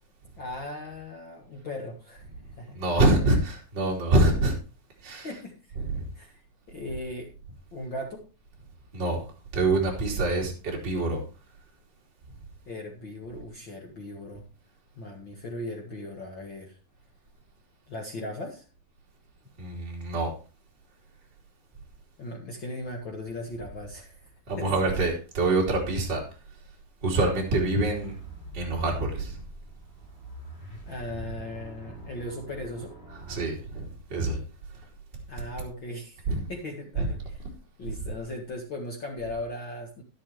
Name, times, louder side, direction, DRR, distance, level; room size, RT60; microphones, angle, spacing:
voice 1, 0.4-2.8 5.2-5.7 6.1-6.4 6.7-7.3 7.7-8.3 12.6-14.5 14.9-16.8 17.9-18.7 22.2-24.8 30.9-32.9 35.3-36.2 36.5-37.2 37.8-40.0, left 1 dB, 45° left, 1.8 m, -38 dB
voice 2, 2.7-4.5 5.0-5.3 5.8-6.1 8.9-9.2 9.5-11.2 19.6-20.3 24.5-26.2 27.0-28.1 28.5-29.4 33.3-34.4 36.3-36.5 37.0-37.1, right 2 dB, 30° right, 3.4 m, -25 dB
sound 1, 27.9-34.1, right 3 dB, 15° left, 4.6 m, -44 dB
11.5 x 11.5 x 3.2 m
omnidirectional pair, 3.9 m